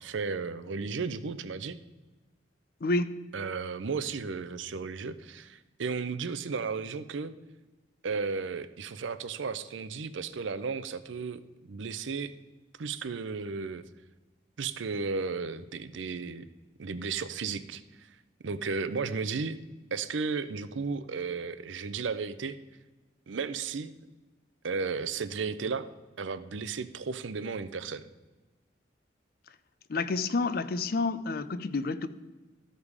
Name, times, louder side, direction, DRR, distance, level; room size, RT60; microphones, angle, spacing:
voice 1, 0.0-1.8 3.3-7.3 8.0-11.4 11.7-12.3 12.8-13.8 14.6-16.4 16.8-18.1 18.4-19.6 19.9-22.6 23.3-23.9 24.6-25.9 26.2-28.1, right 5 dB, 85° right, 13 dB, 0.6 m, -34 dB
voice 2, 2.8-3.2 29.9-32.1, left 3 dB, 50° left, 14 dB, 0.5 m, -29 dB
13.5 x 5.3 x 4.8 m, 1.2 s
head